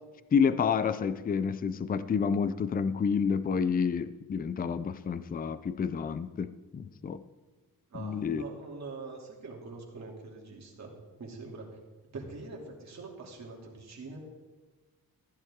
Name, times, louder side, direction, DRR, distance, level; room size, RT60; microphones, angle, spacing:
voice 1, 0.3-7.2 8.0-8.4, left 6 dB, 25° left, 14 dB, 0.4 m, -29 dB
voice 2, 7.9-11.7 12.1-14.2, right 3 dB, 45° right, -1 dB, 2.6 m, -44 dB
14.5 x 10.5 x 3.6 m, 1.3 s
wide cardioid pair, 135°, 37 cm